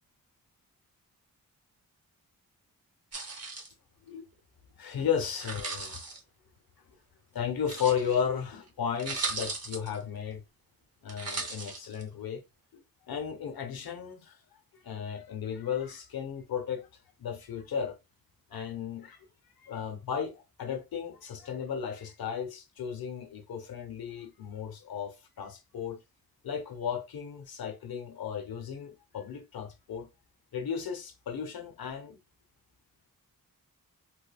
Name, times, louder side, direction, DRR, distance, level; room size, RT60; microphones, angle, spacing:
sound 1, 3.1-3.7 5.3-6.2 7.6-8.2 8.7-8.8 9.0-10.0 11.1-12.0, right 4 dB, 45° right, 0.8 m, -37 dB
voice 1, 4.7-6.0 7.3-10.4 11.0-12.4 12.7-14.4 14.7-16.9 17.2-18.0 18.5-19.3 19.6-26.0 26.4-30.1 30.5-32.2, left 7 dB, 80° left, 0.7 m, -35 dB
3.3 x 3.0 x 2.3 m
wide cardioid pair, 140°, 36 cm